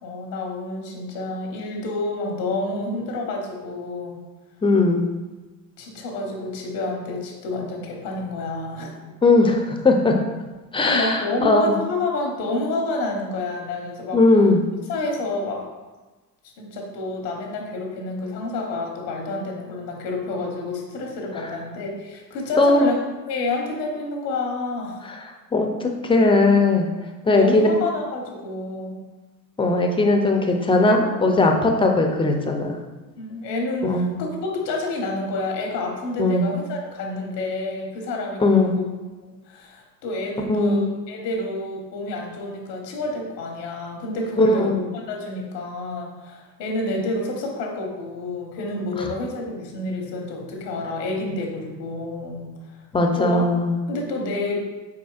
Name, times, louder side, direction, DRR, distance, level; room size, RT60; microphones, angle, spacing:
voice 1, 0.0-4.2 5.8-9.1 10.8-14.2 14.9-15.6 16.6-23.0 23.3-25.0 27.2-29.0 33.2-38.8 39.2-44.8 45.1-52.8 53.1-53.5 53.9-54.7, left 2 dB, 90° left, 1 dB, 1.1 m, -29 dB
voice 2, 4.6-5.1 9.2-10.1 10.7-11.7 14.1-14.6 22.6-22.9 25.0-25.3 25.5-25.7 26.0-26.9 27.2-27.7 29.6-32.8 33.8-34.1 36.2-36.5 38.4-38.7 40.5-40.8 44.4-44.8 52.9-53.8, left 2 dB, 10° left, 3 dB, 0.4 m, -18 dB
4.3 x 4.2 x 2.4 m, 1.2 s
hypercardioid pair, 75°, 47 cm